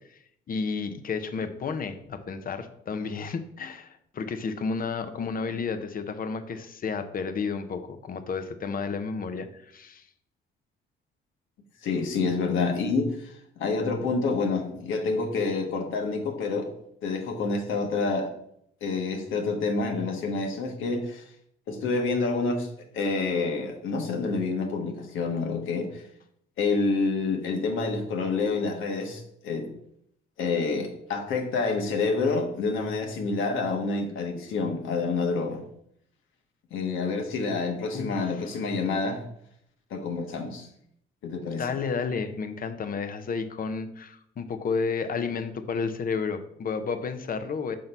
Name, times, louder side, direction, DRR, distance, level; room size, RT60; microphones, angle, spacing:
voice 1, 0.5-10.0 37.9-38.5 41.6-47.8, left 5 dB, 45° left, 9 dB, 0.8 m, -31 dB
voice 2, 11.8-16.7 17.0-18.3 18.8-21.2 21.7-22.7 22.9-26.0 26.6-29.7 30.4-35.6 36.7-39.2 39.9-40.7 41.2-41.6, left 4 dB, 85° left, 3 dB, 1.2 m, -28 dB
5.9 x 3.8 x 5.4 m, 0.72 s
cardioid pair, 90°, 20 cm